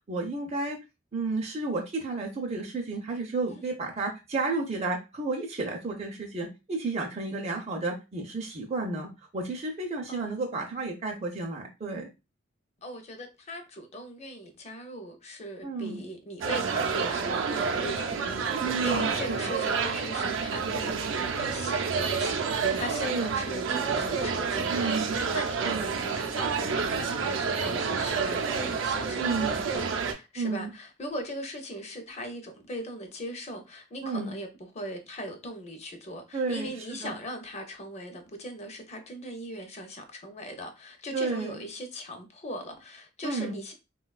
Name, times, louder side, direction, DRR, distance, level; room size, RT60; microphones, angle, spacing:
voice 1, 0.1-0.8 1.1-12.1 15.6-16.0 18.6-19.5 23.1-23.4 24.7-25.2 25.6-25.9 29.2-29.6 30.4-30.7 34.0-34.3 36.3-37.1 41.1-41.6 43.2-43.6, right 3 dB, 35° right, 0.5 m, -32 dB
voice 2, 10.1-10.5 12.8-34.5 34.7-43.7, equal, 35° left, 0.5 m, -39 dB
sound 1, 16.4-30.1, right 5 dB, 90° right, 0.5 m, -29 dB
3.7 x 2.2 x 2.3 m
head